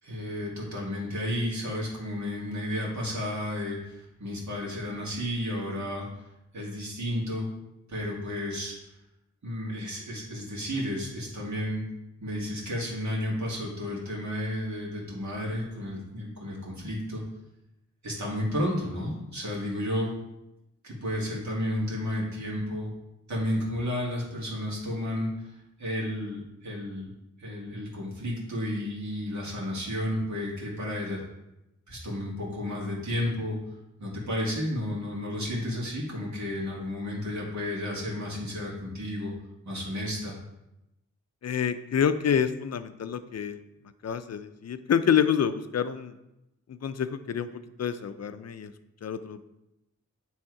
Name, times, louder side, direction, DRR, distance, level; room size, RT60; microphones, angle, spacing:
voice 1, 0.0-6.1 6.5-7.5 7.9-8.7 9.4-11.8 12.2-17.2 18.0-20.1 20.8-22.9 23.3-25.5 25.8-27.1 27.4-31.2 31.9-33.6 34.0-39.3 39.7-40.4, left 1 dB, 75° right, -4 dB, 2.2 m, -32 dB
voice 2, 41.4-43.6 44.0-46.2 46.7-47.5 47.8-48.7 49.0-49.4, left 8 dB, 60° left, 12 dB, 0.5 m, -27 dB
8.9 x 3.5 x 4.7 m, 0.91 s
wide cardioid pair, 115°, 29 cm